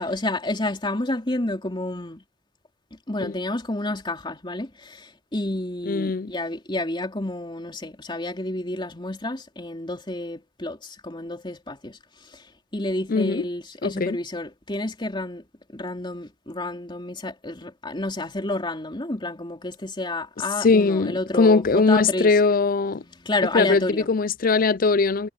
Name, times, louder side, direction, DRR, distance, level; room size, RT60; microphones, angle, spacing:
voice 1, 0.0-2.2 3.1-12.0 12.7-15.4 15.7-22.3 23.2-24.1, left 2 dB, 25° left, 3.1 m, -30 dB
voice 2, 5.9-6.3 13.1-13.5 13.8-14.2 20.6-23.0 23.5-25.3, left 4 dB, 45° left, 0.5 m, -20 dB
head